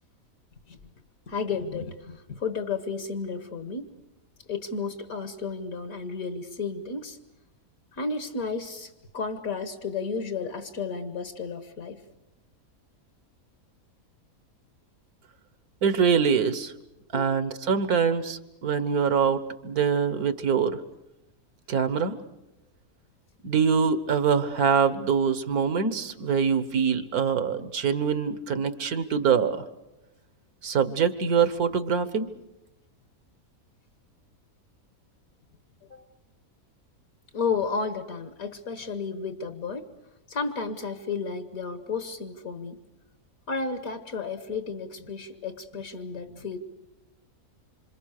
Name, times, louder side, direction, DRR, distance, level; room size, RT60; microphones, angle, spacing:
voice 1, 1.3-3.9 4.5-7.2 7.9-12.0 17.1-17.3 35.9-36.0 37.3-39.9 40.3-42.8 43.5-46.6, left 5 dB, 70° left, 9 dB, 1.8 m, -32 dB
voice 2, 15.8-16.7 17.1-20.8 21.7-22.2 23.4-29.6 30.6-32.3, right 6 dB, 80° right, 12 dB, 1.8 m, -24 dB
26.5 x 26.5 x 6.6 m, 0.93 s
omnidirectional pair, 1.6 m